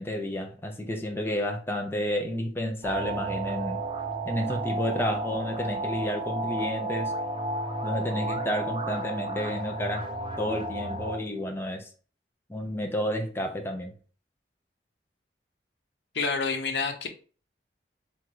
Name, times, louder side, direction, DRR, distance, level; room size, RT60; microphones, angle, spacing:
voice 1, 0.0-3.8 4.2-7.1 7.8-10.1 10.4-11.9 12.5-13.9, left 1 dB, 15° left, 0.8 m, -31 dB
sound 1, 2.8-11.2, right 2 dB, 30° right, 0.6 m, -32 dB
voice 2, 16.1-17.1, left 4 dB, 75° left, 1.0 m, -28 dB
3.8 x 2.9 x 4.6 m
head